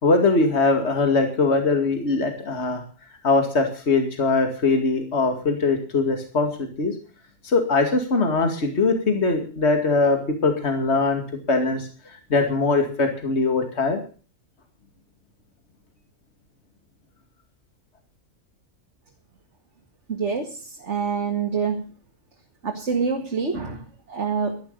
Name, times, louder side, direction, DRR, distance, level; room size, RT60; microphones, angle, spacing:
voice 1, 0.0-2.8 3.2-6.9 7.4-11.2 11.5-14.0, left 3 dB, 45° left, 5 dB, 2.5 m, -21 dB
voice 2, 20.1-21.8 22.6-24.6, right 5 dB, 50° right, 3 dB, 2.1 m, -26 dB
13.0 x 11.5 x 6.8 m, 0.38 s
omnidirectional pair, 1.5 m